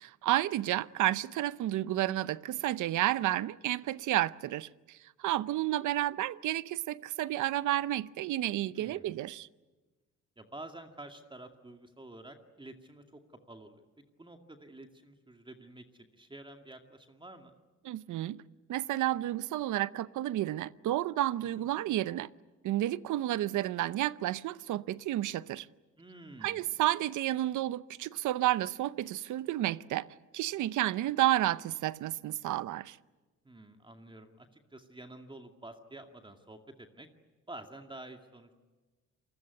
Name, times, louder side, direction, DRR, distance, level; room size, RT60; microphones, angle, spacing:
voice 1, 0.0-9.5 17.9-18.4 18.7-22.3 22.6-25.7 26.4-30.1 30.3-33.0, right 14 dB, 80° right, 0.8 m, -31 dB
voice 2, 8.8-9.2 10.4-13.2 13.5-13.9 14.2-17.5 21.6-21.7 26.0-26.8 33.4-37.1 37.5-38.5, right 2 dB, 15° right, 2.3 m, -49 dB
28.0 x 21.0 x 9.5 m
cardioid pair, 90°, 30 cm